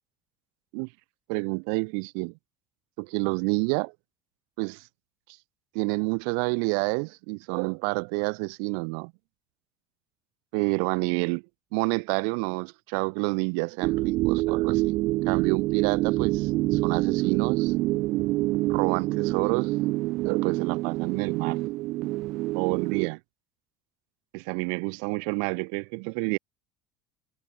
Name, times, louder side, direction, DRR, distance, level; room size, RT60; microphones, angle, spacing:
voice 1, 1.3-2.3 3.0-3.9 4.6-4.8 5.7-9.1 10.5-11.4 11.7-15.0 15.3-17.7 18.7-19.7 20.2-21.6 22.5-23.2 24.3-26.4, right 40 dB or more, 75° right, 4.8 m, -28 dB
sound 1, 13.8-23.1, right 19 dB, 50° right, 3.9 m, -26 dB
cardioid pair, 170°, 0 cm